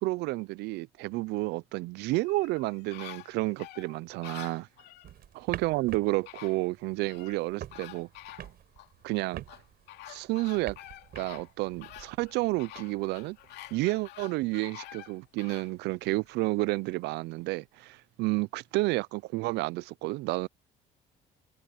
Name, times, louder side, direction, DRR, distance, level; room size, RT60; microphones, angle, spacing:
voice 1, 0.0-4.7 5.3-8.1 9.0-9.4 10.1-10.8 11.2-13.4 13.7-20.5, right 21 dB, 85° right, 0.4 m, -30 dB
sound 1, 2.2-5.1 5.9-6.0 6.3-7.4 7.7-8.9 9.5-15.7 16.2-16.3, left 15 dB, 80° left, 2.5 m, -48 dB
sound 2, 5.0-14.1, right 11 dB, 65° right, 7.6 m, -47 dB
cardioid pair, 110°, 17 cm